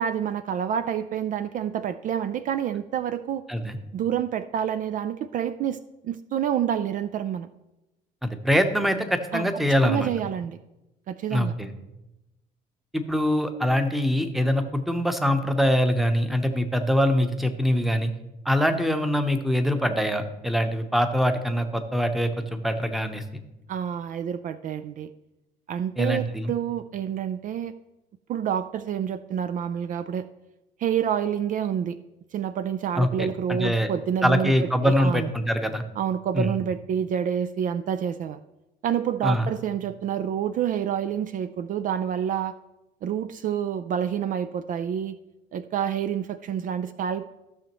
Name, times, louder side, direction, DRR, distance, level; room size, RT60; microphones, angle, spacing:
voice 1, 0.0-3.4 3.9-7.5 9.3-10.6 11.1-11.5 23.7-25.1 25.7-27.8 28.3-30.2 30.8-32.0 32.3-35.3 36.0-38.4 38.8-42.5 43.0-45.2 45.5-47.3, right 9 dB, 50° right, 12 dB, 0.4 m, -28 dB
voice 2, 8.2-10.1 11.3-11.7 12.9-18.1 18.4-23.2 26.0-26.5 33.0-33.9 34.2-35.8 36.3-36.5 39.2-39.5, equal, ahead, 7 dB, 0.9 m, -23 dB
15.0 x 6.3 x 3.0 m, 0.98 s
cardioid pair, 110°, 17 cm